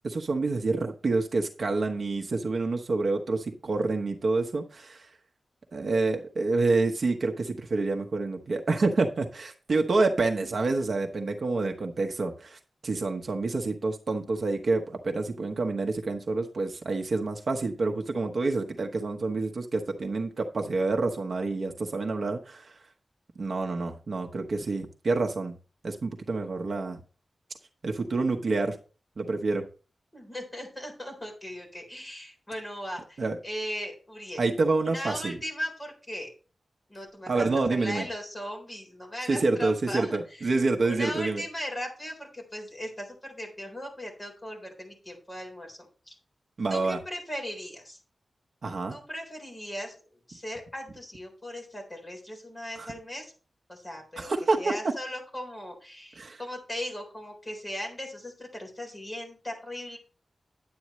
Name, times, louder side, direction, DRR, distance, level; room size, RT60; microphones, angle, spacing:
voice 1, 0.0-5.1 5.7-22.7 23.4-25.5 25.8-27.0 27.8-28.7 29.2-29.6 33.2-33.4 34.4-35.4 37.3-38.0 39.3-41.4 46.6-47.0 48.6-49.0 52.8-52.9 54.2-54.7 56.2-56.4, right 3 dB, 55° right, 3 dB, 1.0 m, -28 dB
voice 2, 30.1-34.4 34.8-36.3 36.9-37.5 37.8-40.5 40.8-45.8 46.1-46.2 46.7-48.0 48.9-50.0 50.3-53.3 53.7-54.3 54.6-60.0, equal, 15° left, 1 dB, 3.8 m, -38 dB
10.5 x 8.7 x 3.1 m, 0.36 s
wide cardioid pair, 155°, 0 cm